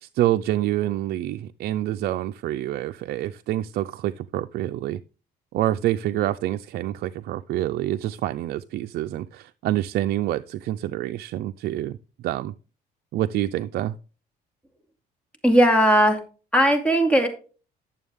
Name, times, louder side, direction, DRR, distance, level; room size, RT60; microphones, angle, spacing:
voice 1, 0.0-5.0 5.5-12.5 13.1-14.0, right 14 dB, 65° right, 9 dB, 0.4 m, -27 dB
voice 2, 15.4-16.2 16.5-17.3, equal, 5° left, 4 dB, 2.2 m, -17 dB
11.0 x 7.1 x 3.5 m, 0.35 s
cardioid pair, 110°, 17 cm